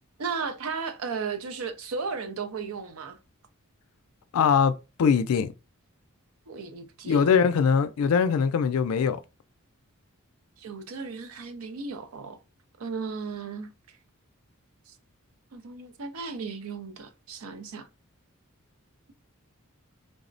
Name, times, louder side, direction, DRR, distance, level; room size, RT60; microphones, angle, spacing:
voice 1, 0.2-3.2 6.5-7.3 10.6-12.4 12.8-13.7 14.9-15.0 15.5-17.9, right 5 dB, 70° right, 0.5 m, -35 dB
voice 2, 4.3-4.7 5.0-5.5 7.1-9.2, left 6 dB, 75° left, 0.3 m, -22 dB
3.4 x 2.0 x 2.5 m
head